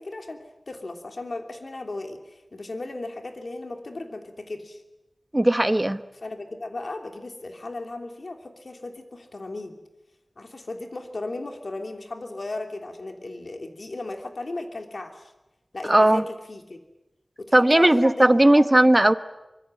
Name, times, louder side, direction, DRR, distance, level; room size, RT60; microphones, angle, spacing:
voice 1, 0.0-4.8 6.1-9.8 10.4-15.3 15.7-16.8 17.4-18.8, left 2 dB, 70° left, 4 dB, 3.1 m, -36 dB
voice 2, 5.3-6.0 15.9-16.2 17.5-19.1, right 1 dB, 25° right, 11 dB, 1.1 m, -17 dB
25.0 x 22.0 x 9.1 m, 0.98 s
wide cardioid pair, 60°, 0 cm